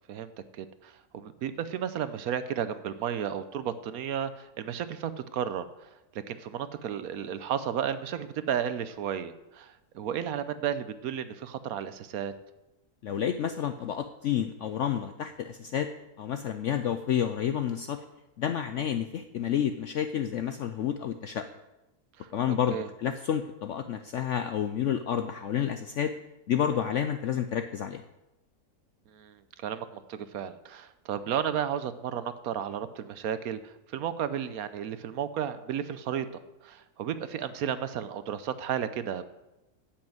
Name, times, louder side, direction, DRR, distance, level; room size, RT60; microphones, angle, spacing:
voice 1, 0.1-5.9 6.3-12.3 22.2-22.3 22.7-22.9 29.1-36.3 36.6-39.3, right 9 dB, 70° right, 13 dB, 1.0 m, -33 dB
voice 2, 13.0-15.9 16.2-18.0 18.4-21.5 22.3-26.1 26.5-28.0, left 9 dB, 70° left, 8 dB, 0.7 m, -30 dB
8.5 x 7.7 x 7.8 m, 0.96 s
omnidirectional pair, 1.8 m